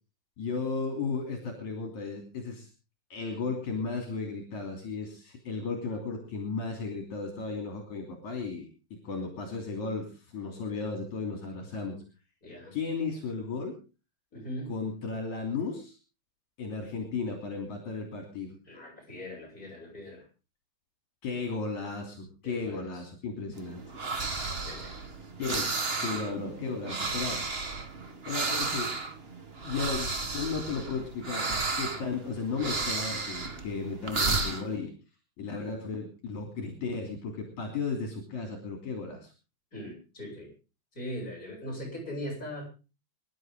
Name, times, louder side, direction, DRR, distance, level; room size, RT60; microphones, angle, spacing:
voice 1, 0.4-2.7 3.1-12.0 12.7-13.7 14.7-16.0 16.6-18.6 21.2-23.8 25.4-27.4 28.3-28.9 29.6-34.9 35.4-39.3, left 4 dB, 70° left, 2 dB, 4.5 m, -35 dB
voice 2, 12.4-12.8 14.3-14.7 18.7-20.2 22.4-22.9 24.6-24.9 39.7-40.5 40.9-42.7, equal, 25° left, -1 dB, 8.5 m, -40 dB
sound 1, 23.5-34.7, right 3 dB, 35° right, 0.9 m, -33 dB
24.5 x 11.5 x 3.8 m, 0.34 s
omnidirectional pair, 3.6 m